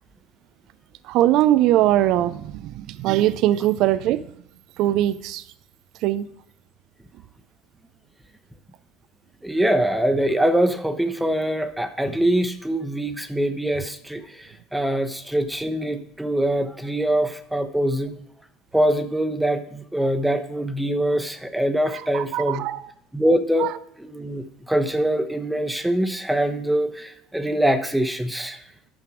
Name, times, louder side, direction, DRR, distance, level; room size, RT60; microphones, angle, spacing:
voice 1, 1.0-4.3 4.8-5.4 6.0-6.3 21.9-22.8 23.6-23.7, right 13 dB, 60° right, 16 dB, 0.4 m, -21 dB
voice 2, 9.4-18.1 18.7-22.6 23.1-23.7 24.0-28.6, right 1 dB, 5° right, 7 dB, 1.0 m, -23 dB
10.5 x 5.8 x 4.9 m, 0.70 s
hypercardioid pair, 70°, 0 cm